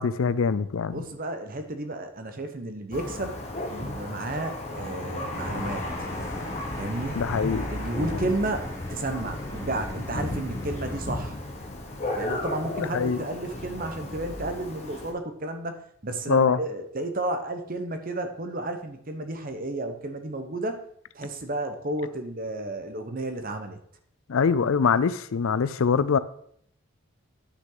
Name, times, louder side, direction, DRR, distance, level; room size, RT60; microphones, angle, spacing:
voice 1, 0.0-1.0 7.2-7.7 12.9-13.2 16.3-16.6 24.3-26.2, left 6 dB, 70° left, 15 dB, 0.4 m, -23 dB
voice 2, 0.9-6.1 6.7-7.2 7.7-11.4 12.2-20.8 21.1-23.8, right 2 dB, 40° right, 7 dB, 0.9 m, -32 dB
Thunder, 2.9-15.1, left 1 dB, 30° left, 1.2 m, -34 dB
sound 1, 5.3-11.0, left 1 dB, 15° left, 1.2 m, -39 dB
9.9 x 6.0 x 3.9 m, 0.66 s
head